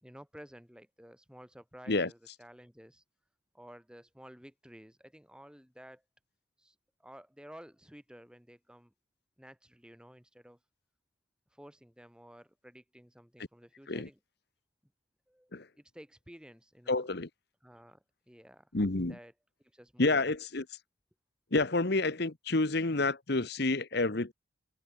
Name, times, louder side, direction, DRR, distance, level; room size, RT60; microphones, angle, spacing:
voice 1, 0.0-3.0 3.5-6.0 6.6-6.7 7.0-8.9 9.4-10.6 11.5-14.2 15.3-17.1 17.6-18.7 19.1-19.3 19.7-20.2, equal, 5° right, 4.4 m, -53 dB
voice 2, 16.9-17.3 18.7-19.1 20.0-20.6 21.5-24.3, left 2 dB, 55° left, 1.2 m, -29 dB
head